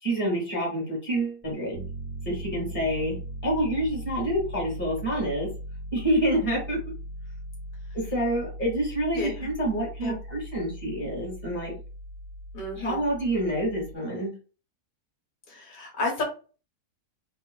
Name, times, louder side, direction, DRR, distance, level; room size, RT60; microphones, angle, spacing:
voice 1, 0.0-1.8 2.2-3.2 3.4-5.5 5.9-6.8 7.9-11.7 12.8-14.3, right 1 dB, 10° left, -5 dB, 1.4 m, -27 dB
Piano, 1.7-13.9, equal, 70° right, 0.9 m, -39 dB
voice 2, 9.1-9.5 10.0-10.2 12.5-13.0 15.5-16.2, left 2 dB, 70° left, -1 dB, 1.4 m, -32 dB
3.0 x 2.3 x 2.2 m, 0.35 s
omnidirectional pair, 1.5 m